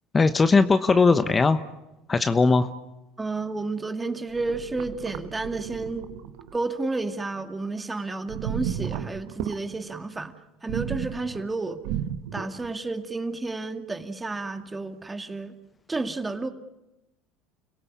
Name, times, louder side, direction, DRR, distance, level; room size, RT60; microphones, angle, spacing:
voice 1, 0.1-1.6 2.1-2.7, left 4 dB, 25° left, 10 dB, 1.1 m, -19 dB
voice 2, 3.2-6.1 6.5-10.3 10.6-11.8 12.3-15.5 15.9-16.5, right 3 dB, 15° right, 8 dB, 2.2 m, -31 dB
sound 1, 4.3-6.6 8.3-9.6 10.7-12.7, right 10 dB, 70° right, 1.4 m, -33 dB
30.0 x 17.5 x 8.5 m, 0.97 s
hypercardioid pair, 80°, 0 cm